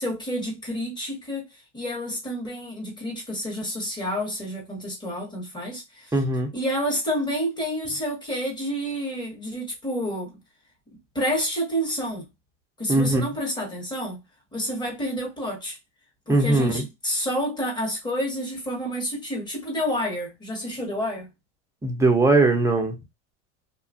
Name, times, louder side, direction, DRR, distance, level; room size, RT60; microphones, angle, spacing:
voice 1, 0.0-1.4 1.7-6.1 6.5-10.4 11.1-12.3 12.8-14.2 14.5-15.8 16.3-21.3, equal, 10° left, 1.0 m, -29 dB
voice 2, 6.1-6.5 12.9-13.2 16.3-16.8 21.8-22.9, right 2 dB, 10° right, 0.5 m, -20 dB
2.8 x 2.3 x 2.5 m
supercardioid pair, 130°, 37 cm